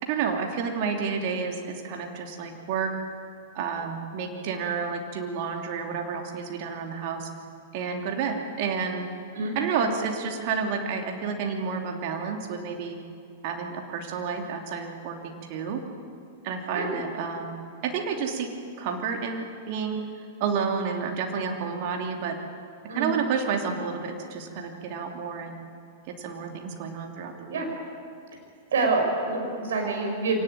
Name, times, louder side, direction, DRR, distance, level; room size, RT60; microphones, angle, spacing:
voice 1, 0.0-2.9 3.5-7.3 7.7-9.0 9.5-13.0 13.4-15.8 16.4-17.6 17.8-18.5 18.8-20.0 20.4-22.3 22.9-25.5 26.2-27.6, right 6 dB, 45° right, 3 dB, 3.0 m, -30 dB
voice 2, 28.7-30.4, right 3 dB, 60° right, 1 dB, 6.0 m, -26 dB
24.0 x 18.5 x 9.0 m, 2.5 s
figure-of-eight pair, 95°, 0 cm